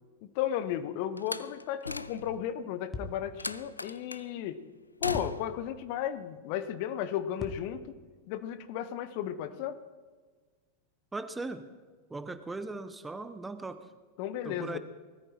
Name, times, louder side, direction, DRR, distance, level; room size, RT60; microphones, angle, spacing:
voice 1, 0.2-4.6 5.0-7.9 8.3-9.8 14.2-14.8, left 10 dB, 45° left, 12 dB, 0.9 m, -34 dB
Slam, 1.2-2.5 3.4-4.3 5.0-5.6, left 3 dB, 80° left, 0.4 m, -38 dB
sound 1, 2.9-3.5 5.1-5.9 7.4-8.3, left 2 dB, 20° left, 1.4 m, -42 dB
voice 2, 11.1-11.7 12.1-13.9 14.4-14.8, right 3 dB, 10° right, 11 dB, 0.8 m, -38 dB
19.5 x 13.5 x 4.4 m, 1.4 s
figure-of-eight pair, 90°, 0 cm